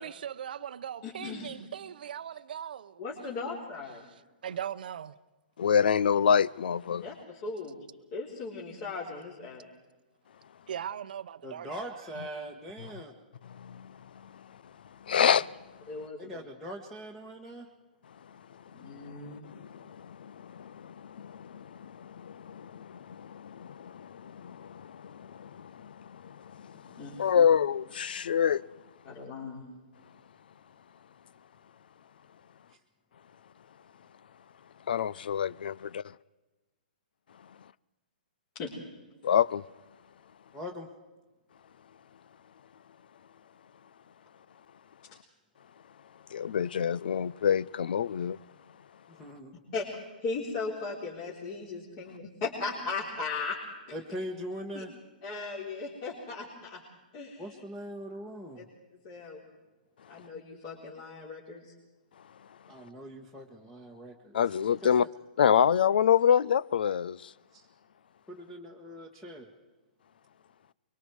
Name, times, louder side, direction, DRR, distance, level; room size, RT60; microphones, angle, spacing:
voice 1, 0.0-3.0 3.4-3.5 4.4-5.1 10.7-12.1, right 9 dB, 65° right, 0.7 m, -39 dB
voice 2, 1.0-1.5 3.0-4.0 7.0-7.8 8.1-9.6 15.2-15.4 15.9-16.4 18.7-19.4 27.0-27.5 29.0-29.6 38.5-38.7 49.7-49.9 50.2-53.6 54.7-54.8 55.2-56.8 57.1-57.6 58.6-58.7 59.0-59.4 60.1-61.6, left 4 dB, 35° left, 4.0 m, -37 dB
voice 3, 5.6-7.0 13.5-14.0 15.1-15.6 18.8-28.6 34.9-36.0 39.2-39.6 46.3-48.4 64.3-65.1 65.4-67.3, left 8 dB, 75° left, 0.6 m, -27 dB
voice 4, 11.4-13.1 16.2-17.7 40.5-40.9 49.1-49.5 53.9-54.9 57.4-58.6 62.7-64.4 67.5-67.7 68.3-69.5, equal, 10° left, 1.5 m, -41 dB
24.0 x 23.0 x 4.7 m
hypercardioid pair, 155°, 5 cm